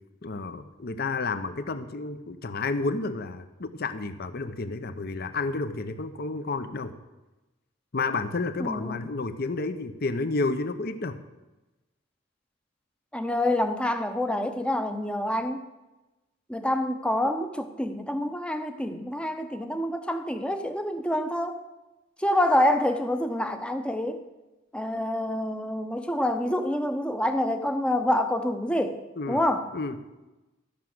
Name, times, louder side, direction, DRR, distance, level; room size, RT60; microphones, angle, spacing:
voice 1, 0.2-6.9 7.9-11.1 29.2-29.4 29.7-30.0, left 3 dB, 50° left, 10 dB, 0.8 m, -30 dB
voice 2, 8.6-9.1 13.1-15.7 16.5-21.6 22.2-24.2 24.7-29.0 29.3-29.7, left 1 dB, 5° left, 7 dB, 0.7 m, -27 dB
13.5 x 5.9 x 7.8 m, 1.1 s
head